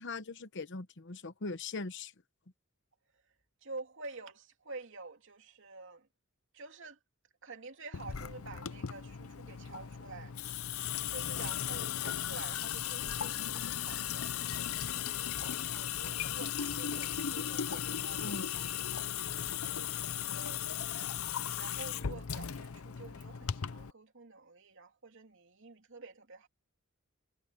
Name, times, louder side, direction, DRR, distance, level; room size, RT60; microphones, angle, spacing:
voice 1, 0.0-2.1 17.7-18.5, left 3 dB, 60° left, 1.1 m, -41 dB
voice 2, 3.6-6.1 6.5-7.0 7.4-10.3 11.1-26.5, right 3 dB, 60° right, 2.9 m, -49 dB
Water tap faucet / Sink (filling or washing) / Drip, 7.9-23.9, left 9 dB, 90° left, 0.7 m, -36 dB
head